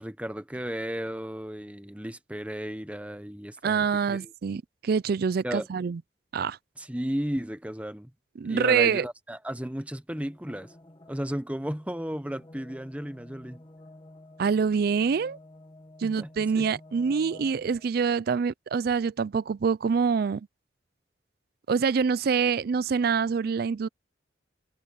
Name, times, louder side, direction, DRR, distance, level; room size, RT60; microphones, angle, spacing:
voice 1, 0.0-4.3 5.4-5.7 6.8-8.1 8.5-10.7 11.1-13.6 16.0-16.7, equal, 10° right, 1.1 m, -34 dB
voice 2, 3.6-6.0 6.3-6.6 8.4-9.0 14.4-15.4 16.0-20.4 21.7-23.9, right 6 dB, 55° right, 0.4 m, -25 dB
sound 1, 10.1-17.9, left 1 dB, 25° left, 1.8 m, -51 dB
head